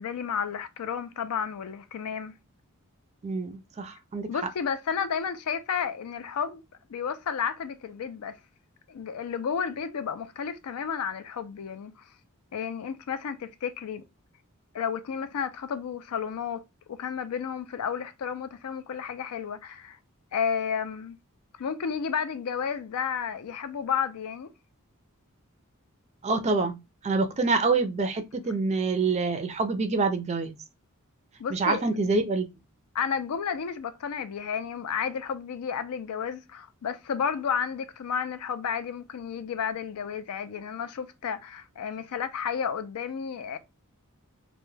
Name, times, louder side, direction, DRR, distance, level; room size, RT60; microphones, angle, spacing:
voice 1, 0.0-2.4 4.3-6.6 6.9-8.4 8.9-12.0 12.5-14.0 14.7-16.6 16.9-20.0 20.3-21.2 21.6-24.5 31.4-31.9 32.9-43.6, left 7 dB, 80° left, 0.4 m, -32 dB
voice 2, 3.2-4.3 26.2-30.6 31.5-32.5, right 3 dB, 30° right, 0.4 m, -26 dB
2.2 x 2.1 x 3.1 m
head